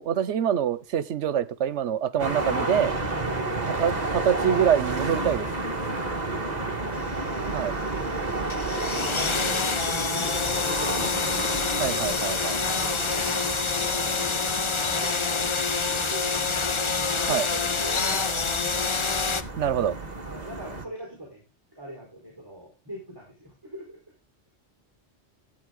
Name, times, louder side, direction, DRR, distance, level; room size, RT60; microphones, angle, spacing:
voice 1, 0.0-2.9 3.8-5.5 7.5-7.7 11.8-12.6 17.3-17.5 19.6-20.0, right 9 dB, 85° right, 1.1 m, -25 dB
sound 1, 2.2-20.9, right 2 dB, 40° right, 1.6 m, -31 dB
voice 2, 3.2-3.8 6.1-7.0 7.3-7.9 8.5-8.7 9.0-11.3 11.7-14.2 14.5-16.8 17.2-18.5 20.3-21.4 21.7-24.0, right 1 dB, 20° right, 4.5 m, -42 dB
sound 2, 7.0-19.4, left 4 dB, 30° left, 0.6 m, -27 dB
12.5 x 8.9 x 3.8 m
omnidirectional pair, 1.2 m